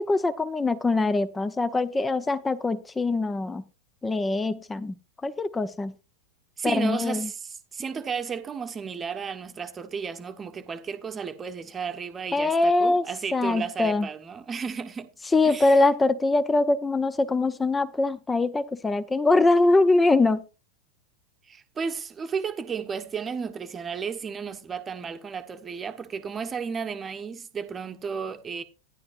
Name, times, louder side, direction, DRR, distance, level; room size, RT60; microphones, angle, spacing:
voice 1, 0.0-3.6 4.0-4.9 5.2-5.9 6.6-7.3 12.3-13.0 13.3-14.1 15.3-20.4, left 2 dB, 10° left, 0.6 m, -23 dB
voice 2, 6.6-15.1 15.4-15.9 21.5-28.6, right 6 dB, 20° right, 1.0 m, -33 dB
13.0 x 10.5 x 2.5 m
figure-of-eight pair, 90°, 0 cm